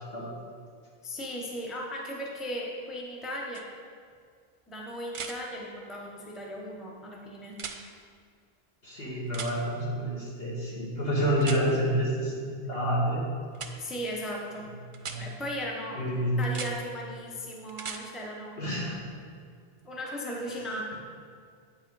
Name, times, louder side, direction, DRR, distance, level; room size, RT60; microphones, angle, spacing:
voice 1, 1.0-3.7 4.7-7.6 13.8-14.7 15.2-16.0 16.4-18.6 19.8-20.9, equal, ahead, -2 dB, 0.7 m, -37 dB
sound 1, 3.5-3.6 5.1-5.4 7.5-7.8 9.3-9.5 11.4-11.6 13.5-13.7 14.9-15.2 16.4-16.7 17.7-18.0 20.1-20.2, right 5 dB, 50° right, 0.4 m, -38 dB
voice 2, 8.8-13.2 15.0-15.3 16.0-16.4 18.6-19.2, equal, 70° left, -6 dB, 2.0 m, -29 dB
8.7 x 4.7 x 4.7 m, 2.1 s
omnidirectional pair, 1.0 m